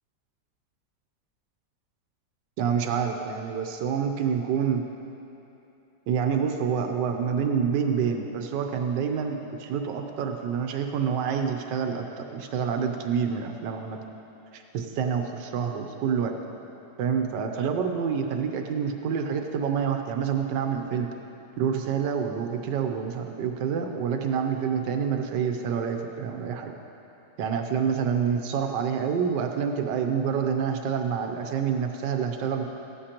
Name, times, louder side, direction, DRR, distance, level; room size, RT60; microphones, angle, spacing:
voice 1, 2.6-4.8 6.1-14.0 14.5-16.3 17.0-21.1 21.6-26.7 27.4-32.6, right 7 dB, 90° right, 4 dB, 1.4 m, -27 dB
15.0 x 12.5 x 2.9 m, 2.9 s
omnidirectional pair, 1.8 m